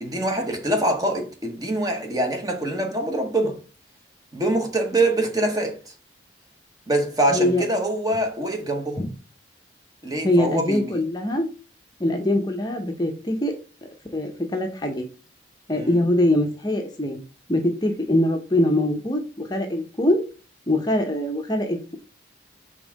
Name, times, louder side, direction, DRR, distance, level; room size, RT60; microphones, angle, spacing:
voice 1, 0.0-3.6 4.3-5.9 6.9-9.0 10.0-11.0 15.7-16.0, right 1 dB, 20° right, 1.0 m, -24 dB
voice 2, 7.3-7.6 9.0-9.1 10.2-11.5 12.0-13.5 14.1-15.0 15.7-17.2 17.5-20.2 20.7-22.0, left 1 dB, 20° left, 0.7 m, -23 dB
5.4 x 3.5 x 5.1 m
head